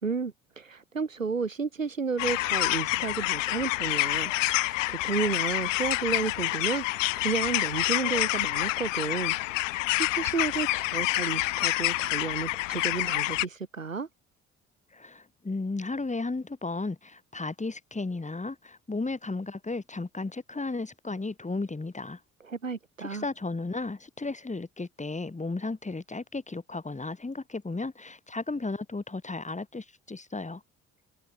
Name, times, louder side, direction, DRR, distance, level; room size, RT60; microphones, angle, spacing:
voice 1, 0.0-9.4 9.9-14.1 22.4-23.3, right 5 dB, 90° right, 3.6 m, -32 dB
sound 1, 2.2-13.4, left 19 dB, 75° left, 1.9 m, -28 dB
voice 2, 14.9-22.2 23.0-30.6, left 3 dB, 20° left, 5.4 m, -34 dB
figure-of-eight pair, 45°, 38 cm